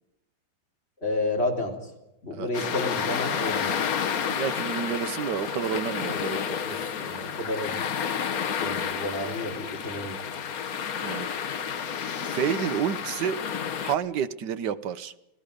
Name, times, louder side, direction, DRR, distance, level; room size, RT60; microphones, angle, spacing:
voice 1, 1.0-1.9 2.2-3.7 6.1-6.2 6.7-7.9 8.6-10.2, left 2 dB, 35° left, 0 dB, 3.9 m, -31 dB
voice 2, 2.3-2.7 4.3-6.6 11.0-11.3 11.6-11.8 12.2-13.4 13.8-15.1, right 8 dB, 70° right, 13 dB, 1.5 m, -30 dB
sound 1, 2.5-13.9, left 7 dB, 55° left, 1.4 m, -30 dB
29.5 x 17.5 x 5.2 m, 0.93 s
omnidirectional pair, 2.0 m